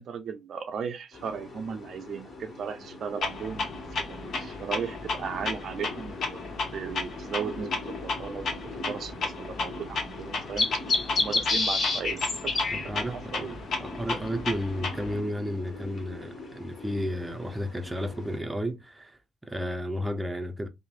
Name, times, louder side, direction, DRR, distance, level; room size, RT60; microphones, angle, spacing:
voice 1, 0.0-3.7 4.1-6.4 6.7-8.6 8.9-10.7 11.2-13.6, right 6 dB, 65° right, 0.4 m, -36 dB
sound 1, 1.1-18.4, left 3 dB, 45° left, 1.4 m, -35 dB
Clock, 3.2-15.2, left 3 dB, 65° left, 0.9 m, -34 dB
voice 2, 12.7-20.7, equal, 10° right, 0.6 m, -33 dB
3.1 x 2.0 x 2.4 m
supercardioid pair, 65°, 0 cm